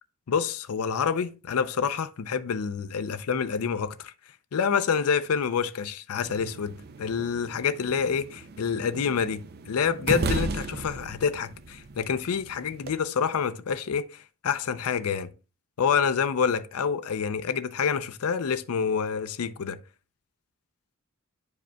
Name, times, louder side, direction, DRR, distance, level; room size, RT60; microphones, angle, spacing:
voice 1, 0.3-4.1 4.5-14.2 14.4-15.3 15.8-19.8, left 6 dB, 90° left, 0.5 m, -27 dB
sound 1, 6.2-12.9, right 3 dB, 45° right, 0.5 m, -35 dB
10.5 x 5.0 x 2.2 m
head